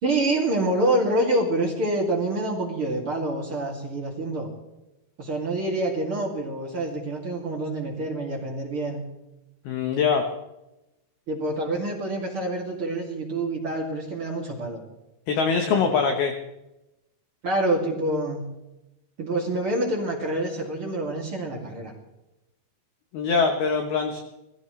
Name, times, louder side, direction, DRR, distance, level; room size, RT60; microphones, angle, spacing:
voice 1, 0.0-4.5 5.2-9.1 11.3-14.8 15.7-16.0 17.4-18.4 19.2-21.9, right 1 dB, 35° right, -1 dB, 2.4 m, -27 dB
voice 2, 9.7-10.3 15.3-16.3 23.1-24.2, left 5 dB, 70° left, 4 dB, 2.5 m, -23 dB
23.5 x 15.0 x 3.2 m, 0.95 s
omnidirectional pair, 5.7 m